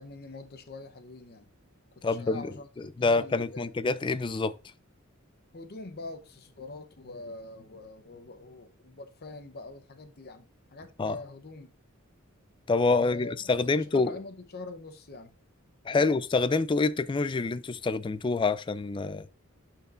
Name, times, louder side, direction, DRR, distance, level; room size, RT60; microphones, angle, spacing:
voice 1, 0.0-1.5 2.0-4.0 5.5-11.7 13.0-15.3 15.9-16.1, left 2 dB, 50° left, 0.8 m, -44 dB
voice 2, 2.0-2.5 3.0-4.5 11.0-11.2 12.7-14.1 15.9-19.3, left 3 dB, 25° left, 0.3 m, -26 dB
12.0 x 4.4 x 2.5 m
head